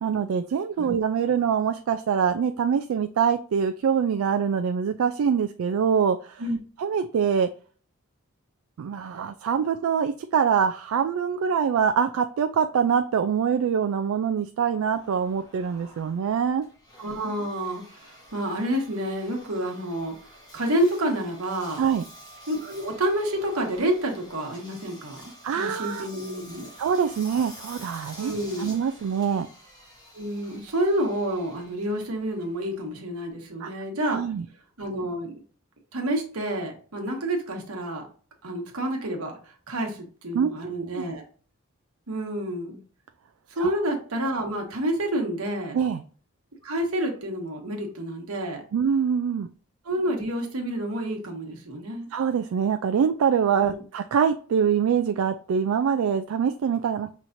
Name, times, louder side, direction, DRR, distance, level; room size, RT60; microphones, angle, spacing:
voice 1, 0.0-6.4 6.8-7.5 8.8-16.6 21.8-22.0 25.4-26.1 26.8-28.3 28.6-29.5 33.6-33.7 34.1-34.4 40.3-41.0 43.6-43.7 45.7-46.0 48.7-49.5 52.1-57.1, right 7 dB, 75° right, 8 dB, 0.3 m, -24 dB
Engine, 14.9-33.3, equal, 20° left, 1.4 m, -49 dB
voice 2, 17.0-20.1 20.5-21.8 22.5-26.7 28.2-28.8 30.1-34.2 34.8-35.3 35.9-38.1 38.4-41.2 42.1-42.8 43.5-45.8 46.6-48.6 49.8-52.1 53.6-53.8, right 1 dB, 90° right, 2 dB, 1.2 m, -29 dB
5.6 x 3.1 x 2.6 m, 0.41 s
head